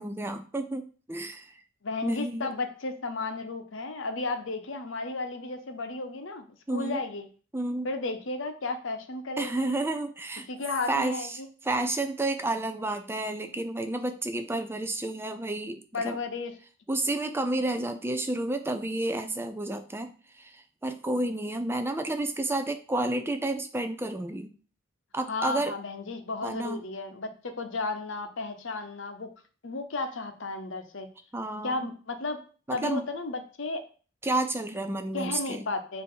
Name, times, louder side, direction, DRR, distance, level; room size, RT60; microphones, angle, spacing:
voice 1, 0.0-1.5 2.0-2.5 6.7-7.0 7.5-7.9 9.4-10.5 10.9-16.2 16.9-24.6 25.1-25.7 26.4-26.8 31.3-31.8 32.7-33.1 34.2-35.6, right 2 dB, 10° right, 8 dB, 0.5 m, -31 dB
voice 2, 1.8-7.2 7.8-9.8 10.5-11.5 15.9-16.5 25.3-27.3 27.6-29.3 29.6-31.1 31.6-32.4 32.7-33.8 35.1-36.0, left 3 dB, 65° left, 7 dB, 0.9 m, -33 dB
7.6 x 2.8 x 5.6 m, 0.39 s
head